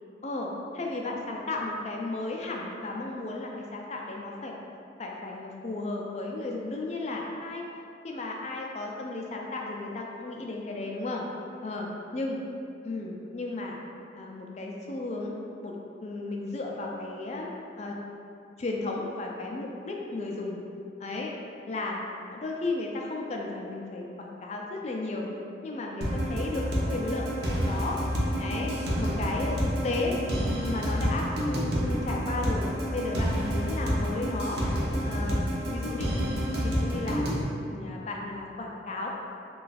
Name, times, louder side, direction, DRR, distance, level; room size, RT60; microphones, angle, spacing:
voice 1, 0.2-4.5 5.0-7.6 8.0-11.2 11.6-12.4 12.8-13.8 14.1-15.3 15.6-17.5 17.8-18.0 18.6-20.6 21.0-21.3 21.7-22.0 22.3-25.3 25.6-28.0 28.4-30.2 30.6-34.6 35.0-36.1 36.6-37.3 37.7-39.1, left 2 dB, 35° left, -1 dB, 0.4 m, -34 dB
sound 1, 26.0-37.4, equal, 55° right, 0.6 m, -29 dB
3.1 x 2.3 x 4.0 m, 2.6 s
head